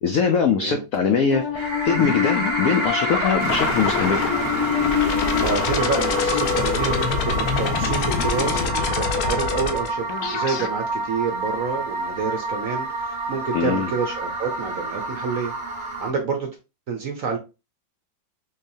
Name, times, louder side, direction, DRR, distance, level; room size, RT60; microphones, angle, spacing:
voice 1, 0.0-4.3 13.5-13.9, left 6 dB, 90° left, 5 dB, 0.7 m, -22 dB
sound 1, 1.3-10.7, left 6 dB, 70° left, 1.0 m, -25 dB
sound 2, 1.6-16.1, right 2 dB, 20° right, 0.8 m, -28 dB
sound 3, 3.4-8.7, equal, 15° left, 0.4 m, -32 dB
voice 2, 5.4-16.5 16.9-17.4, right 5 dB, 65° right, 3 dB, 0.8 m, -28 dB
3.8 x 3.0 x 2.6 m, 0.28 s
omnidirectional pair, 2.0 m